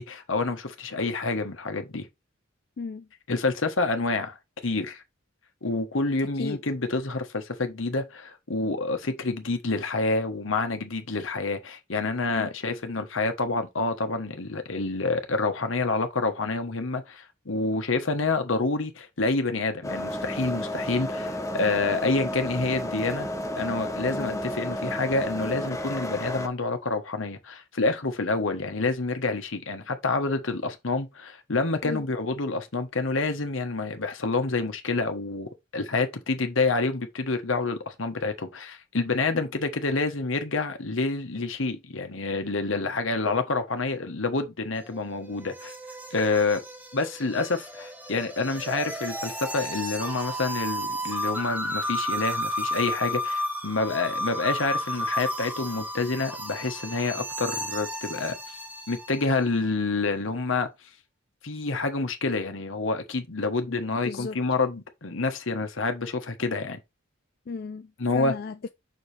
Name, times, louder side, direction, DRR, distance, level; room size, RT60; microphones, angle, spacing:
voice 1, 0.0-2.1 3.3-4.4 4.6-5.0 5.6-23.3 23.6-45.7 46.1-46.6 46.9-58.6 58.9-60.7 61.4-66.8 68.0-68.3, left 3 dB, 80° left, 1.2 m, -28 dB
voice 2, 2.8-3.1 6.4-6.6 12.4-12.5 24.1-24.4 31.8-32.0 63.7-64.4 67.5-68.7, left 4 dB, 50° left, 0.4 m, -35 dB
sound 1, 19.8-26.5, equal, 15° left, 0.7 m, -32 dB
sound 2, 44.7-59.4, equal, 10° right, 1.0 m, -33 dB
6.4 x 4.6 x 3.3 m
head